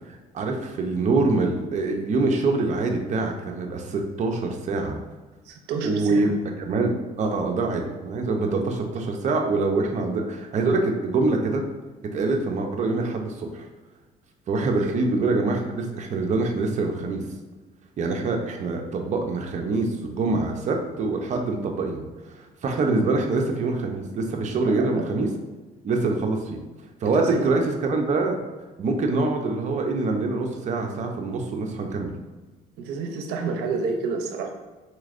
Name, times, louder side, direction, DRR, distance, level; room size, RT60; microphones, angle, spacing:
voice 1, 0.1-5.0 5.8-6.3 6.6-11.6 12.1-13.7 14.5-17.2 18.0-25.3 25.8-26.6 27.0-28.4 28.8-32.1, right 3 dB, 45° right, 3 dB, 0.6 m, -25 dB
voice 2, 5.5-6.4 14.8-14.9 24.6-25.1 27.2-27.4 32.8-34.5, right 4 dB, 85° right, 4 dB, 0.6 m, -29 dB
4.2 x 3.1 x 2.5 m, 1.2 s
cardioid pair, 110°, 17 cm